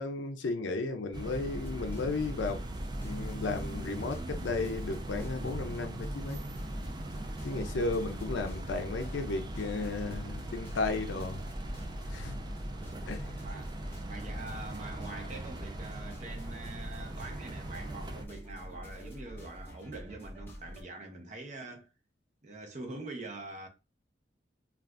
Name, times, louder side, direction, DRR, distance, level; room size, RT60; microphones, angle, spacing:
voice 1, 0.0-2.6 3.0-6.4 7.4-11.4 12.1-12.4 13.1-13.4, left 3 dB, 85° left, 0.5 m, -34 dB
sound 1, 1.1-18.2, right 1 dB, 25° right, 0.3 m, -40 dB
sound 2, 1.6-20.8, equal, 10° left, 0.8 m, -46 dB
voice 2, 7.0-7.4 13.4-13.8 14.1-21.9 22.4-23.7, right 2 dB, 40° right, 0.7 m, -44 dB
2.5 x 2.4 x 3.3 m
head